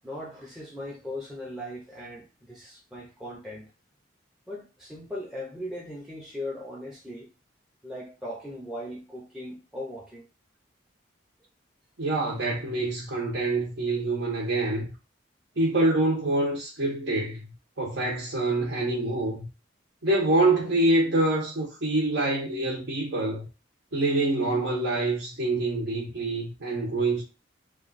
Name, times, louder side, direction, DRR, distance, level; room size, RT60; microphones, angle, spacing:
voice 1, 0.0-3.7 4.5-7.3 7.8-10.3, left 1 dB, ahead, 0.5 m, -38 dB
voice 2, 12.0-14.9 15.6-17.4 17.8-19.5 20.0-23.5 23.9-27.2, right 2 dB, 65° right, 0.8 m, -26 dB
3.1 x 2.3 x 4.0 m
head